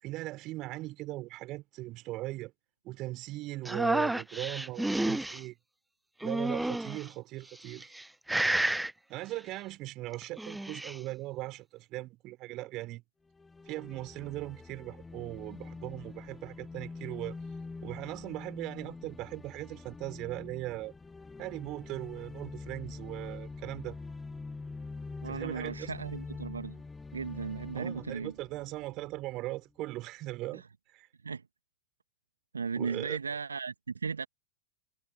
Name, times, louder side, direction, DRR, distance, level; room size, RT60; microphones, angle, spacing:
voice 1, 0.0-2.5 2.8-5.6 6.2-7.9 9.1-13.0 13.7-17.4 17.8-20.9 21.4-24.0 25.2-25.9 27.7-30.7 30.9-31.1 32.8-33.2, right 18 dB, 40° right, 5.8 m, -39 dB
sound 1, 3.6-5.4 6.2-7.0 7.7-8.0 8.3-8.9 10.2-11.0, right 1 dB, 5° right, 0.7 m, -30 dB
sound 2, 13.3-29.4, left 3 dB, 10° left, 2.1 m, -45 dB
voice 2, 25.2-26.8 27.1-28.3 30.5-30.6 31.2-31.4 32.5-34.3, right 5 dB, 75° right, 2.3 m, -36 dB
figure-of-eight pair, 90°, 0 cm